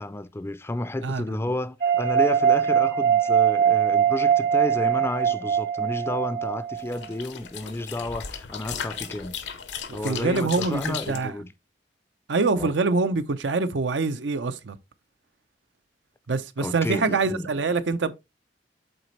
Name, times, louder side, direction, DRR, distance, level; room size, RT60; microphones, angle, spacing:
voice 1, 0.0-9.3 9.9-11.5 12.6-12.7 16.6-17.5, left 1 dB, 15° left, 0.4 m, -31 dB
voice 2, 1.0-1.4 9.9-11.3 12.3-14.8 16.3-18.1, right 3 dB, 85° right, 0.7 m, -25 dB
sound 1, 1.8-7.0, right 8 dB, 50° right, 0.9 m, -22 dB
sound 2, 6.8-11.2, left 7 dB, 80° left, 0.9 m, -36 dB
7.8 x 4.1 x 3.2 m
head